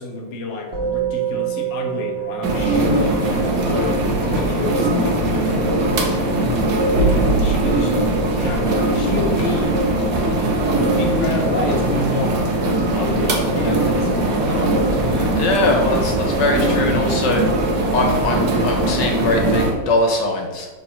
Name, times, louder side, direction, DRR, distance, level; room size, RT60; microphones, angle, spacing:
voice 1, 0.0-6.5 7.4-8.0 8.4-9.8 10.1-12.4 12.9-15.4, left 3 dB, 50° left, 0 dB, 1.0 m, -29 dB
Musical instrument, 0.7-10.2, right 11 dB, 35° right, 1.8 m, -31 dB
sound 1, 2.4-19.7, right 1 dB, 65° right, 1.5 m, -20 dB
voice 2, 15.4-17.4 17.9-20.7, left 2 dB, 70° left, 2 dB, 1.6 m, -21 dB
4.7 x 3.9 x 5.5 m, 1.4 s
omnidirectional pair, 2.0 m